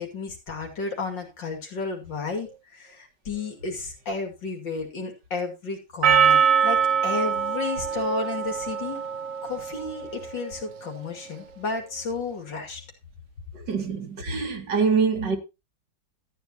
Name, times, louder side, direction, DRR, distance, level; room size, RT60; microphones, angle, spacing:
voice 1, 0.0-9.0 9.4-12.8, left 3 dB, 80° left, 3.1 m, -32 dB
Percussion, 6.0-10.3, right 7 dB, 55° right, 1.1 m, -23 dB
voice 2, 13.5-15.4, right 5 dB, 70° right, 2.4 m, -25 dB
13.5 x 10.0 x 2.9 m
omnidirectional pair, 1.9 m